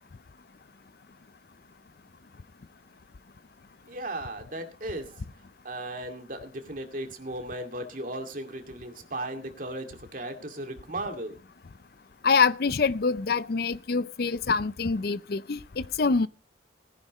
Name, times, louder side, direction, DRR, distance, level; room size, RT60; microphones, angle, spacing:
voice 1, 3.9-5.2 5.6-11.4, right 1 dB, 50° right, 2.3 m, -36 dB
voice 2, 12.2-16.3, left 4 dB, 55° left, 0.5 m, -25 dB
19.0 x 10.5 x 3.1 m
head